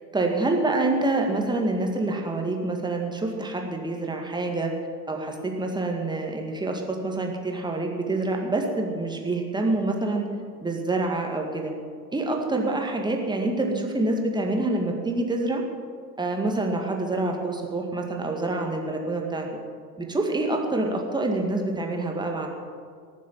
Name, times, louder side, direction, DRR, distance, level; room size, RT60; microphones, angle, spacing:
voice 1, 0.1-4.7 5.1-10.3 10.6-11.7 12.1-15.6 16.2-19.5 20.0-22.5, right 2 dB, 10° right, 1 dB, 2.0 m, -26 dB
18.5 x 7.4 x 7.4 m, 2.1 s
figure-of-eight pair, 80°, 49 cm